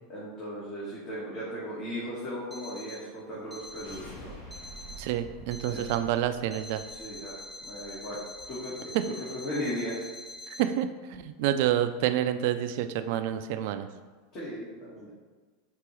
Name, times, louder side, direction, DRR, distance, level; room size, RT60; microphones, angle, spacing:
voice 1, 0.1-4.3 5.6-5.9 6.9-8.2 8.5-8.9 9.3-10.0 14.3-15.1, equal, 45° left, -8 dB, 1.4 m, -37 dB
Alarm, 2.5-3.1 3.5-4.1 4.5-5.1 5.5-6.1 6.5-10.6, left 1 dB, 5° left, 0.7 m, -45 dB
sound 1, 3.6-8.5, right 1 dB, 75° left, 1.4 m, -49 dB
voice 2, 5.0-6.8 8.9-9.0 10.6-13.9, right 11 dB, 65° right, 9 dB, 0.3 m, -28 dB
4.7 x 2.9 x 3.1 m, 1.4 s
hypercardioid pair, 95°, 0 cm